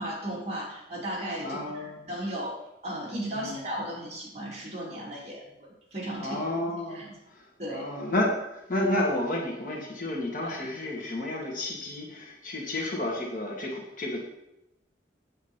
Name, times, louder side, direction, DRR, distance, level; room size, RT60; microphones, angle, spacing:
voice 1, 0.0-2.5 2.8-5.4 5.9-6.4 6.9-7.2 7.6-7.9 10.4-10.6, right 1 dB, 35° right, -5 dB, 3.2 m, -35 dB
voice 2, 1.4-2.1 3.3-3.6 6.2-14.3, left 1 dB, 50° left, -2 dB, 2.2 m, -31 dB
8.6 x 7.9 x 4.5 m, 0.85 s
head